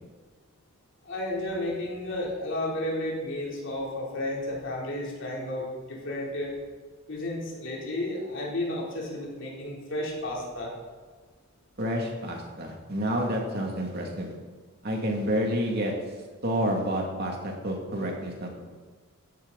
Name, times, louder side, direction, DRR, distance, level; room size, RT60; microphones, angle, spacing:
voice 1, 1.0-6.6 7.1-10.7, left 1 dB, 60° left, -3 dB, 3.6 m, -32 dB
voice 2, 11.8-14.3 14.8-15.9 16.4-18.5, equal, 45° right, 0 dB, 2.6 m, -29 dB
15.5 x 11.0 x 4.1 m, 1.4 s
head